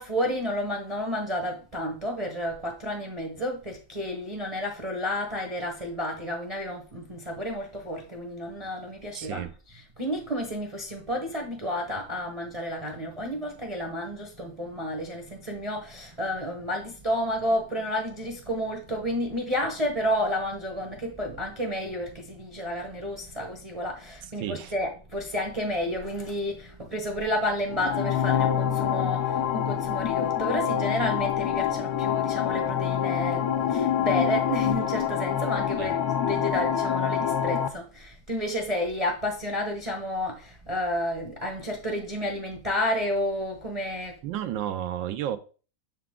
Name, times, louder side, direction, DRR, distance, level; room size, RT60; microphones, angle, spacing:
voice 1, 0.0-44.1, equal, 25° right, 0.8 m, -31 dB
voice 2, 9.1-9.5 24.4-24.7 35.8-35.9 44.2-45.4, right 11 dB, 80° right, 1.3 m, -32 dB
sound 1, 27.7-37.7, left 9 dB, 70° left, 1.0 m, -26 dB
6.8 x 4.7 x 3.6 m
omnidirectional pair, 2.0 m